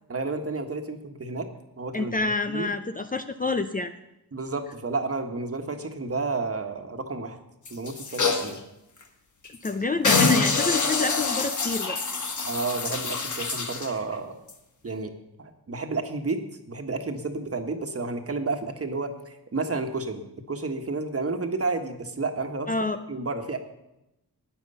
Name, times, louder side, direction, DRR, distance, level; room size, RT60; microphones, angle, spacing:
voice 1, 0.1-1.5 1.8-2.7 4.3-7.4 7.7-8.6 12.4-14.4 14.8-15.1 15.4-16.4 16.7-22.7 23.1-23.6, right 3 dB, 35° right, 5 dB, 1.5 m, -31 dB
voice 2, 1.9-3.9 9.6-12.0 22.7-23.0, left 3 dB, 20° left, 8 dB, 0.6 m, -28 dB
sound 1, 7.7-8.6 9.0-9.1 9.4-9.7 10.0-13.9 14.5-14.6, left 4 dB, 50° left, 1.5 m, -25 dB
13.5 x 9.3 x 5.5 m, 0.90 s
cardioid pair, 90°, 39 cm